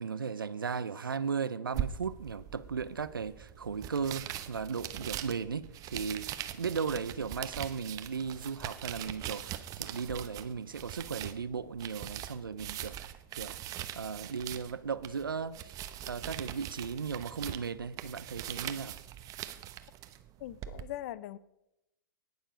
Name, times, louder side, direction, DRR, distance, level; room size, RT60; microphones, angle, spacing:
voice 1, 0.0-13.6 13.9-15.7 16.0-19.0, right 6 dB, 85° right, 0.7 m, -36 dB
sound 1, 1.7-20.8, right 12 dB, 30° right, 0.9 m, -42 dB
voice 2, 20.4-21.4, left 13 dB, 50° left, 0.7 m, -41 dB
19.0 x 7.2 x 5.0 m
hypercardioid pair, 110°, 11 cm